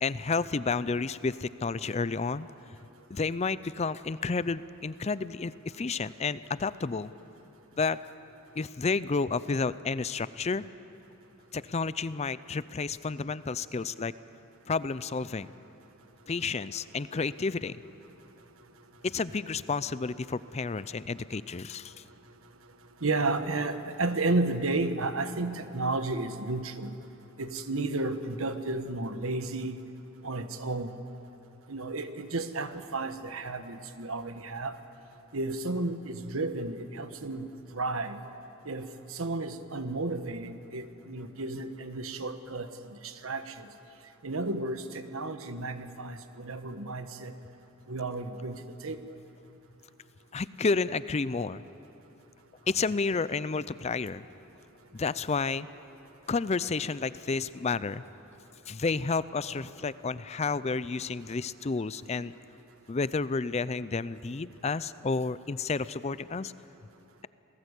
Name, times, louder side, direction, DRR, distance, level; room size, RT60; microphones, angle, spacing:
voice 1, 0.0-2.5 3.1-7.1 7.8-8.0 8.6-10.7 11.5-14.1 14.7-15.6 16.3-17.8 19.0-21.9 50.3-51.6 52.7-54.2 54.9-55.7 56.3-58.0 58.7-62.3 62.9-66.5, left 4 dB, 30° left, 16 dB, 0.5 m, -31 dB
voice 2, 23.0-26.9 27.4-29.8 30.2-30.9 31.7-34.8 35.3-38.2 38.6-42.7 43.0-43.7 44.2-47.3 47.9-49.0, right 2 dB, 85° right, 9 dB, 1.3 m, -32 dB
27.5 x 18.5 x 8.3 m, 2.9 s
head